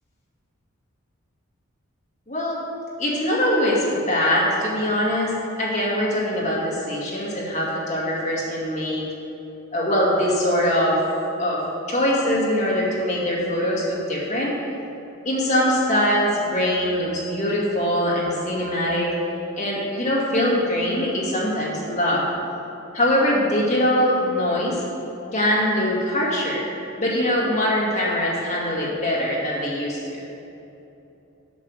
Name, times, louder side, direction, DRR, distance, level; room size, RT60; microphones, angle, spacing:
voice 1, 3.0-9.0 9.7-11.0 11.4-11.6 11.9-14.5 15.2-19.1 19.6-22.2 22.9-24.8 25.3-26.6 27.0-30.2, left 1 dB, 35° left, -5 dB, 2.3 m, -22 dB
8.3 x 6.6 x 6.5 m, 3.0 s
head